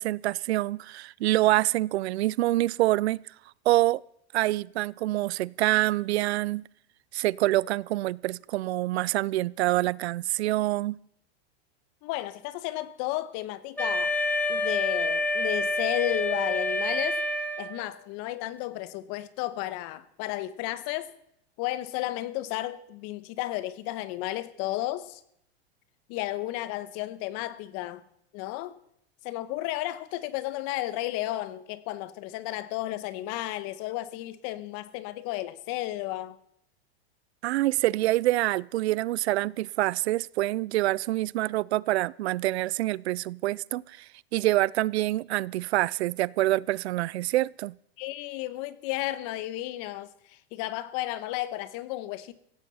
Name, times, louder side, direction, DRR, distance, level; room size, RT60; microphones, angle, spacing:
voice 1, 0.0-3.2 3.7-4.0 4.3-6.6 7.1-11.0 37.4-47.8, right 17 dB, 80° right, 0.5 m, -26 dB
voice 2, 12.0-14.1 14.5-17.2 17.6-21.1 21.6-25.2 26.1-28.0 28.3-28.8 29.2-36.4 48.0-52.3, left 15 dB, 50° left, 1.1 m, -33 dB
Wind instrument woodwind instrument, 13.8-18.0, left 1 dB, 5° left, 1.4 m, -28 dB
17.0 x 16.0 x 4.2 m
hypercardioid pair, 120°, 32 cm